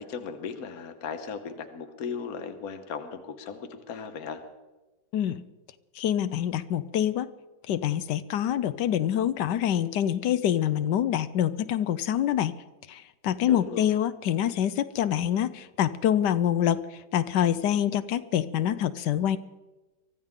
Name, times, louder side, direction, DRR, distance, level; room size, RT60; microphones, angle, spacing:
voice 1, 0.0-4.4 13.5-13.9, left 6 dB, 60° left, 7 dB, 1.6 m, -37 dB
voice 2, 6.0-7.3 7.7-12.5 12.9-16.8 17.1-19.4, left 10 dB, 80° left, 13 dB, 1.3 m, -26 dB
24.0 x 15.0 x 3.7 m, 1.1 s
omnidirectional pair, 1.8 m